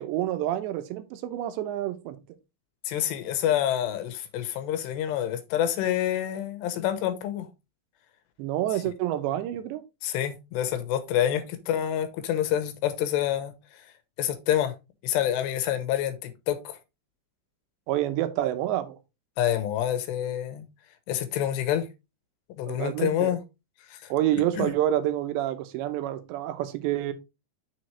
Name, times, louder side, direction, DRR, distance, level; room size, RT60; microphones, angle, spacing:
voice 1, 0.0-2.2 8.4-9.8 11.3-11.4 17.9-19.0 22.7-23.4 24.1-27.1, right 12 dB, 85° right, 3.1 m, -28 dB
voice 2, 2.9-7.5 10.0-13.5 14.2-14.7 15.0-16.8 19.4-20.7 21.1-21.9 22.6-23.4 23.9-24.1 24.6-24.7, left 11 dB, 85° left, 3.0 m, -27 dB
6.9 x 6.4 x 3.1 m
omnidirectional pair, 5.0 m